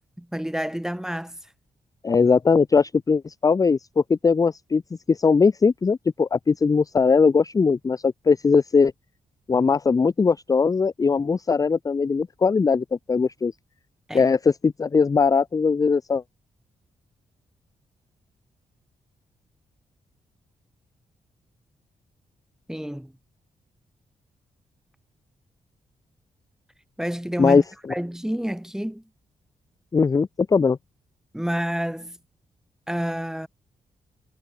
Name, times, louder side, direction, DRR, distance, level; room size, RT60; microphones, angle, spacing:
voice 1, 0.2-1.4 14.1-14.3 22.7-23.1 27.0-27.6 27.9-29.0 31.3-32.2 32.9-33.5, equal, 5° right, 3.6 m, -29 dB
voice 2, 2.0-4.8 5.1-8.9 9.5-13.5 14.1-16.2 27.4-27.6 29.9-30.8, left 5 dB, 25° left, 0.4 m, -20 dB
cardioid pair, 65°, 14 cm